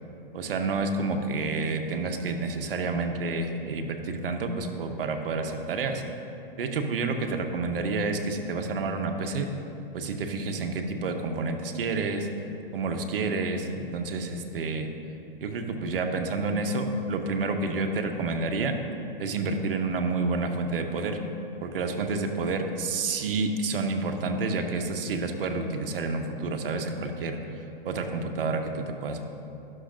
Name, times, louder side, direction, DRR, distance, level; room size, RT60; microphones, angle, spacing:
voice 1, 0.3-6.0 6.6-9.5 9.9-12.3 12.7-14.9 15.4-18.8 19.2-21.2 21.6-27.4 27.8-29.2, right 3 dB, 65° right, 5 dB, 0.8 m, -29 dB
11.5 x 6.4 x 2.5 m, 2.9 s
hypercardioid pair, 130°, 29 cm